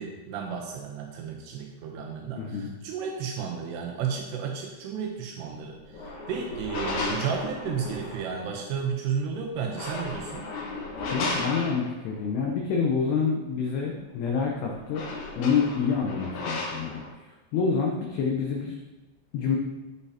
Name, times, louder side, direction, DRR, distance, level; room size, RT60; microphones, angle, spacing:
voice 1, 0.0-10.5, right 6 dB, 90° right, 0 dB, 2.4 m, -33 dB
voice 2, 2.4-2.7 11.1-15.0 15.4-17.0 17.5-18.8 19.3-19.6, left 5 dB, 85° left, 0 dB, 2.3 m, -27 dB
sound 1, 5.8-8.4 9.6-12.2 14.2-14.3 14.6-17.1, left 2 dB, 65° left, 2.6 m, -34 dB
15.5 x 5.5 x 2.8 m, 1.1 s
omnidirectional pair, 5.9 m